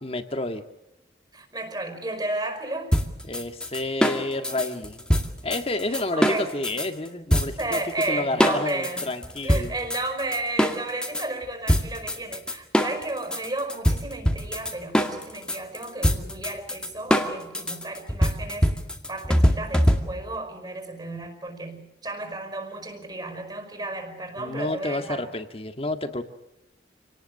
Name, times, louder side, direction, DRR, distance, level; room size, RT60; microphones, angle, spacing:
voice 1, 0.0-0.6 3.2-5.0 5.4-7.8 8.1-9.8 24.4-26.2, left 2 dB, 35° left, 7 dB, 1.9 m, -30 dB
voice 2, 1.3-2.9 5.9-6.5 7.6-9.1 9.4-18.7 19.1-25.3, right 2 dB, 25° right, 7 dB, 5.2 m, -33 dB
sound 1, 2.9-6.9 7.3-8.1 8.4-11.3 11.7-20.4, equal, 5° left, 2.1 m, -24 dB
28.0 x 19.0 x 6.6 m, 0.90 s
head